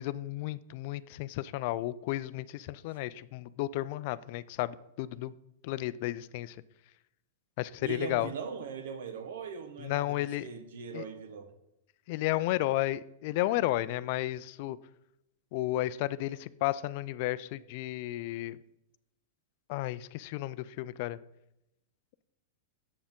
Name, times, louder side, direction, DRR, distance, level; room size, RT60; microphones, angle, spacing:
voice 1, 0.0-5.3 5.6-6.6 7.6-8.3 9.8-10.5 10.9-11.0 12.1-14.8 15.5-18.6 19.7-21.2, left 16 dB, 55° left, 17 dB, 0.3 m, -33 dB
voice 2, 7.8-11.5, right 6 dB, 75° right, 9 dB, 1.1 m, -40 dB
7.3 x 7.1 x 3.6 m, 0.84 s
hypercardioid pair, 125°, 0 cm